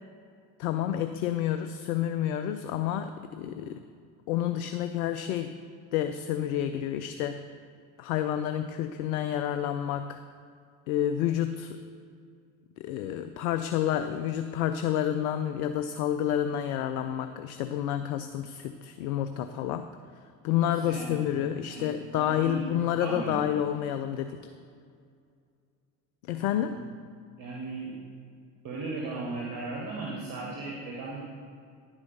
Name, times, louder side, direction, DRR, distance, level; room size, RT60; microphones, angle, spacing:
voice 1, 0.6-3.8 4.3-5.6 5.9-7.4 8.0-10.2 10.9-11.8 12.8-19.9 20.4-24.5 26.3-26.8, left 10 dB, 80° left, 9 dB, 0.5 m, -29 dB
voice 2, 20.6-21.3 21.6-22.6 23.0-23.5 26.3-26.8 27.4-27.9 28.6-31.2, right 3 dB, 50° right, -3 dB, 1.6 m, -37 dB
10.5 x 4.9 x 5.5 m, 2.2 s
hypercardioid pair, 60°, 42 cm